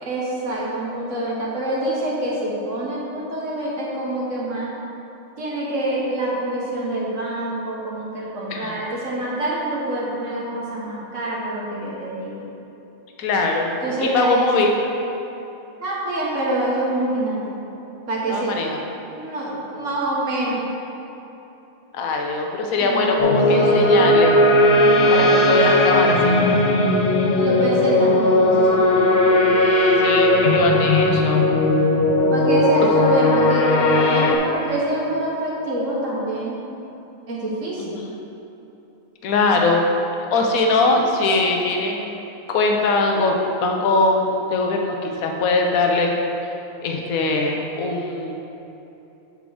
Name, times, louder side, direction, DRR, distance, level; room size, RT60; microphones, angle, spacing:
voice 1, 0.0-4.7 5.4-12.3 13.8-14.5 15.8-17.6 18.1-18.5 19.1-20.6 22.8-24.1 24.8-26.0 27.3-29.2 32.3-36.6 37.3-38.0, right 1 dB, 65° right, -6 dB, 1.6 m, -26 dB
voice 2, 13.2-13.7 14.0-14.7 18.3-18.8 21.9-24.4 25.1-26.4 30.0-31.5 37.8-38.2 39.2-39.8 40.3-46.1 46.8-48.4, left 3 dB, 85° left, 2 dB, 1.1 m, -21 dB
sound 1, 23.2-34.4, left 1 dB, 50° left, 0.6 m, -17 dB
7.5 x 3.5 x 6.2 m, 3.0 s
omnidirectional pair, 1.4 m